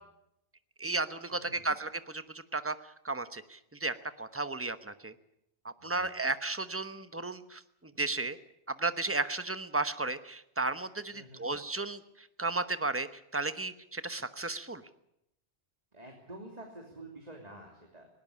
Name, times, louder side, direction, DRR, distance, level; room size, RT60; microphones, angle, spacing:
voice 1, 0.8-2.8 3.0-5.1 5.6-7.6 8.0-8.4 8.8-13.1 13.3-14.8, right 3 dB, 15° right, 11 dB, 1.0 m, -34 dB
voice 2, 1.3-1.7 5.8-6.1 11.1-11.5 15.9-18.1, right 1 dB, 35° right, 2 dB, 3.2 m, -49 dB
20.0 x 18.5 x 8.5 m, 0.80 s
omnidirectional pair, 1.1 m